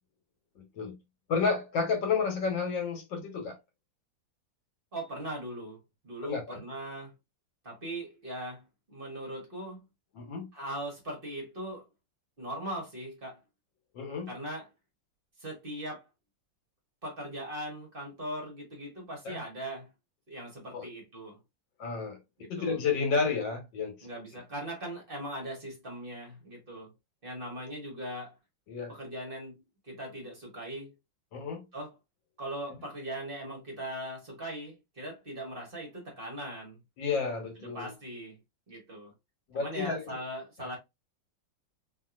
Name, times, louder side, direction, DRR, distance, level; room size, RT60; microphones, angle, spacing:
voice 1, 0.6-1.0 1.3-3.6 6.2-6.6 10.1-10.5 13.9-14.3 19.3-19.4 20.7-20.9 21.8-22.2 22.5-24.0 28.7-28.9 31.3-31.7 37.0-37.9 39.5-40.2, left 5 dB, 75° left, 1.8 m, -31 dB
voice 2, 4.9-7.1 7.6-9.8 10.5-11.8 12.4-13.4 14.3-14.7 15.4-16.1 17.0-19.9 20.3-21.4 22.4-22.8 24.0-26.9 27.2-28.4 28.9-29.5 29.8-30.9 31.7-31.9 32.4-36.8 37.6-38.4 38.7-39.1 39.5-40.8, right 1 dB, 35° right, 1.1 m, -40 dB
3.2 x 2.7 x 2.4 m
omnidirectional pair, 2.0 m